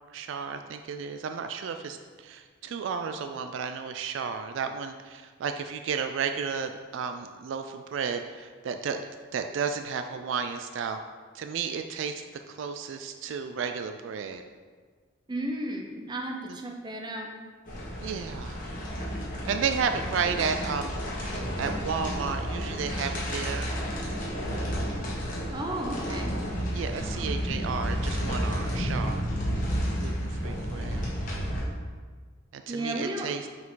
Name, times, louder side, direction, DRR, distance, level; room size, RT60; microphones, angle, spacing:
voice 1, 0.1-9.0 9.3-11.0 11.3-12.1 12.5-14.4 16.5-16.6 18.0-18.6 19.5-21.0 21.2-23.7 26.7-29.2 30.0-31.0 32.5-33.5, right 6 dB, 70° right, 7 dB, 0.3 m, -32 dB
voice 2, 15.3-17.3 25.5-26.3 27.2-27.3 32.7-33.3, right 1 dB, 20° right, 2 dB, 0.6 m, -34 dB
sound 1, 17.6-31.6, equal, 45° left, 1.5 m, -31 dB
5.9 x 4.8 x 3.8 m, 1.5 s
head